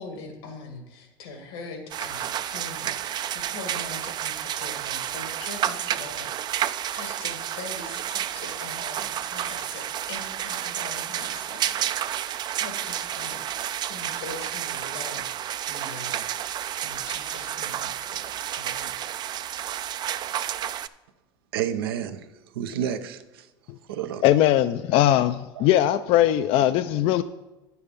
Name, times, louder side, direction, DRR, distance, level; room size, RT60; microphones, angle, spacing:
voice 1, 0.0-15.3 15.7-16.2 16.5-18.3 18.6-19.0, left 3 dB, 85° left, 2.3 m, -42 dB
sound 1, 1.9-20.9, right 11 dB, 35° right, 0.4 m, -31 dB
voice 2, 21.5-22.3 22.5-23.5 23.9-24.3 25.6-25.8, right 9 dB, 90° right, 0.7 m, -30 dB
voice 3, 24.2-27.2, left 12 dB, 50° left, 0.4 m, -20 dB
9.6 x 7.0 x 5.2 m
supercardioid pair, 110°, 12 cm